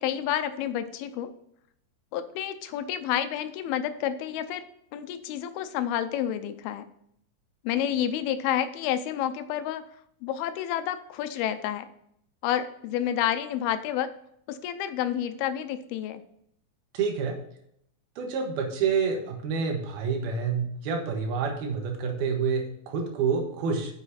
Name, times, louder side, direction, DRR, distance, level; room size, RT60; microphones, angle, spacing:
voice 1, 0.0-1.3 2.1-4.6 4.9-6.9 7.6-9.8 10.2-11.9 12.4-14.1 14.5-16.2, left 10 dB, 80° left, 10 dB, 2.6 m, -29 dB
voice 2, 16.9-17.3 18.2-24.0, right 5 dB, 75° right, 2 dB, 3.3 m, -28 dB
7.8 x 6.6 x 4.3 m, 0.71 s
omnidirectional pair, 4.5 m